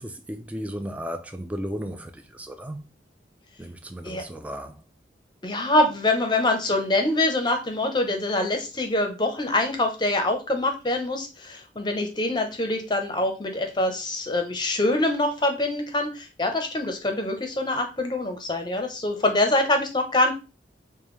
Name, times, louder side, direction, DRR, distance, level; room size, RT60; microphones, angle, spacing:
voice 1, 0.0-2.9 3.6-4.8, equal, 10° right, 0.4 m, -35 dB
voice 2, 5.4-20.3, left 2 dB, 25° left, 0.7 m, -24 dB
5.1 x 2.2 x 3.2 m
head